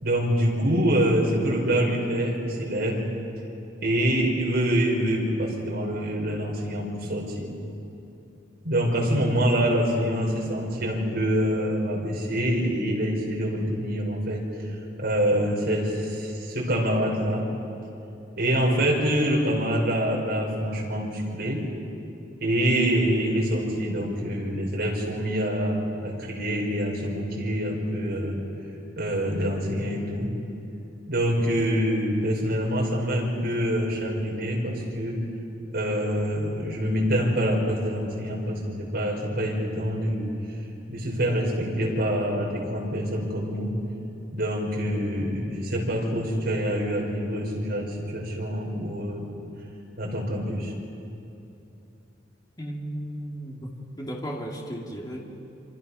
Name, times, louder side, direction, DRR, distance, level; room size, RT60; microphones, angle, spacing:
voice 1, 0.0-3.0 3.8-7.5 8.6-14.4 15.0-17.5 18.4-21.7 22.4-28.4 29.0-30.3 31.1-35.2 35.7-40.3 40.9-43.7 44.3-49.3 50.0-50.7, equal, 55° right, -2 dB, 5.3 m, -25 dB
voice 2, 52.6-55.2, equal, 20° left, -1 dB, 2.7 m, -35 dB
26.5 x 26.5 x 5.7 m, 2.8 s
head